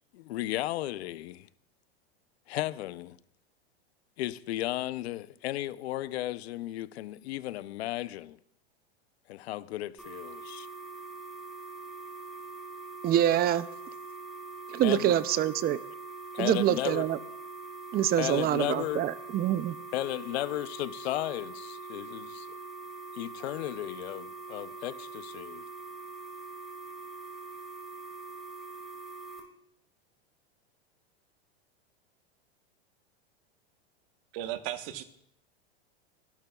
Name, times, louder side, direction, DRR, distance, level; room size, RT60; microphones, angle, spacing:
voice 1, 0.1-1.5 2.5-3.2 4.2-8.4 9.3-10.7 14.8-15.1 16.3-17.0 18.2-19.0 19.9-22.5 23.1-25.6, left 15 dB, 75° left, 0.7 m, -34 dB
sound 1, 10.0-29.4, right 3 dB, ahead, 4.2 m, -43 dB
voice 2, 13.0-13.7 14.7-15.8 16.4-17.2 17.9-19.8, right 11 dB, 30° right, 0.6 m, -26 dB
voice 3, 34.3-35.0, right 13 dB, 60° right, 1.3 m, -35 dB
26.5 x 12.0 x 2.4 m
supercardioid pair, 120°, 32 cm